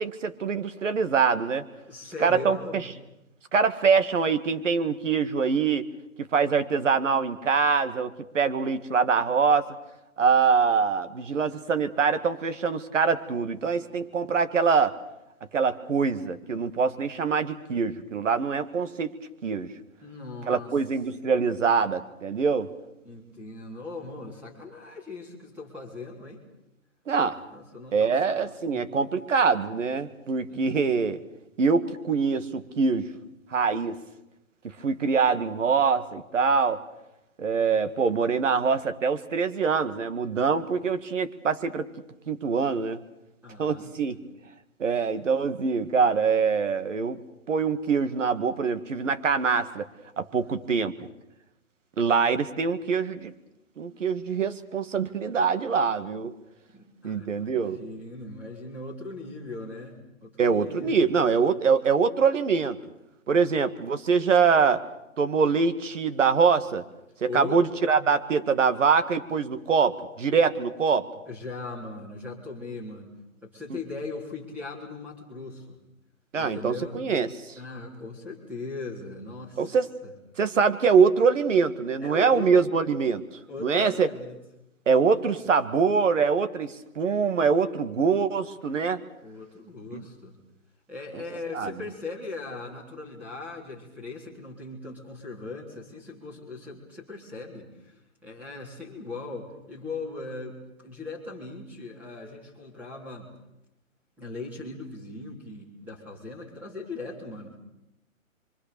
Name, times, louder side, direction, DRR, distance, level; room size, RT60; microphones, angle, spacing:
voice 1, 0.0-1.6 2.2-2.8 3.5-5.9 6.3-9.7 10.2-15.0 15.5-19.1 19.4-19.7 20.5-22.7 27.1-27.4 27.9-31.2 31.6-33.1 33.5-34.0 34.6-36.8 37.4-41.9 42.3-43.0 43.6-44.2 44.8-47.2 47.5-49.9 50.2-50.9 52.0-53.3 53.8-56.3 57.0-57.8 60.4-62.8 63.3-64.8 65.2-66.8 67.2-71.1 76.3-77.5 79.6-79.9 80.4-83.2 83.6-84.1 84.9-89.0 89.9-90.1 91.5-91.7, right 5 dB, 60° right, 10 dB, 2.0 m, -24 dB
voice 2, 1.9-2.9 20.0-20.7 23.0-26.4 27.5-28.8 30.5-30.8 43.4-44.2 50.4-50.6 56.7-61.1 67.3-67.6 71.3-73.2 73.4-75.8 76.4-77.0 77.6-79.8 80.0-80.1 82.0-82.5 83.5-84.4 84.9-85.1 89.2-90.4 90.9-97.9 98.2-103.3 104.2-107.6, left 3 dB, 5° right, -2 dB, 3.6 m, -39 dB
26.5 x 24.5 x 6.9 m, 0.90 s
hypercardioid pair, 170°, 41 cm